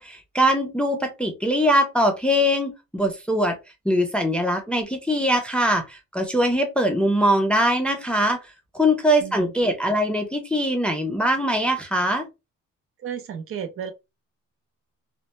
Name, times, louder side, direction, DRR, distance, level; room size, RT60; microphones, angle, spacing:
voice 1, 0.0-3.6 3.9-8.4 8.7-12.3, equal, 5° left, 0.4 m, -22 dB
voice 2, 9.2-9.5 13.0-13.9, right 8 dB, 45° right, 0.5 m, -33 dB
2.1 x 2.1 x 2.9 m
cardioid pair, 120°, 31 cm